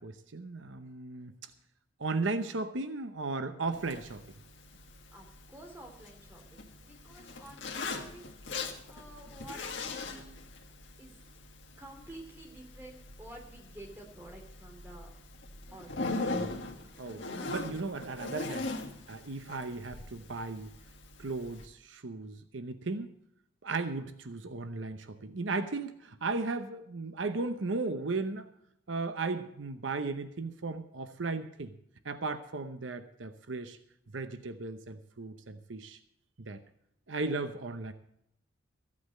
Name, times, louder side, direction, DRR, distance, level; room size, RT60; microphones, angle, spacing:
voice 1, 0.0-1.3 2.0-4.2 17.0-18.7 19.1-20.7 21.2-23.1 23.6-28.5 28.9-31.7 32.0-33.8 34.1-36.0 36.4-36.6 37.1-37.9, right 3 dB, 75° right, 10 dB, 0.8 m, -36 dB
Zipper (clothing), 3.7-21.7, left 3 dB, 70° left, 1.7 m, -41 dB
voice 2, 5.1-10.4 11.0-11.1 11.8-15.1 15.7-16.1, right 1 dB, 10° right, 1 dB, 3.0 m, -50 dB
14.5 x 8.6 x 6.5 m, 0.76 s
head